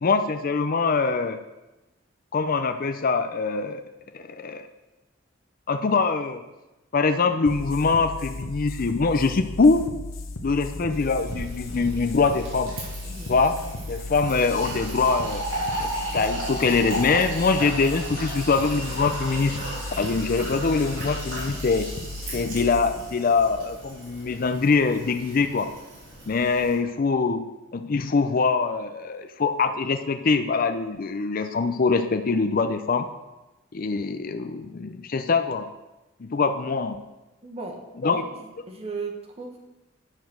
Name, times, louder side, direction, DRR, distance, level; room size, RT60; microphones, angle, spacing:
voice 1, 0.0-1.4 2.3-3.8 4.1-4.7 5.7-6.4 6.9-9.9 10.4-12.7 13.3-13.6 13.9-15.4 15.8-19.6 20.0-21.9 22.3-25.7 26.3-27.5 27.7-33.1 33.7-35.7 36.2-37.0 38.0-38.2, left 4 dB, 45° left, 8 dB, 0.5 m, -23 dB
sound 1, 7.4-24.5, left 2 dB, 90° left, 0.8 m, -36 dB
Fill (with liquid), 10.9-26.7, right 1 dB, 80° right, 3.7 m, -35 dB
voice 2, 13.0-13.4 19.9-20.2 37.4-37.8 38.1-39.6, right 3 dB, 30° right, 0 dB, 1.4 m, -37 dB
9.4 x 5.0 x 6.3 m, 1.0 s
head